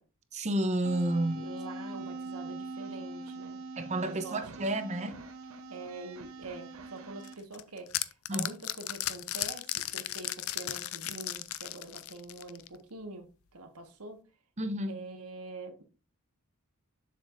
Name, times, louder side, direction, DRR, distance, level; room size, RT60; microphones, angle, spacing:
voice 1, 0.3-1.5 3.8-5.2 8.3-8.5 14.6-15.0, right 1 dB, 30° right, 0.7 m, -31 dB
sound 1, 0.8-7.3, right 2 dB, 65° right, 0.9 m, -42 dB
voice 2, 1.3-3.6 4.0-4.6 5.7-14.2 14.9-15.8, right 3 dB, 85° right, 1.6 m, -45 dB
sound 2, 7.2-12.8, left 14 dB, 70° left, 0.5 m, -36 dB
7.3 x 6.8 x 2.6 m
head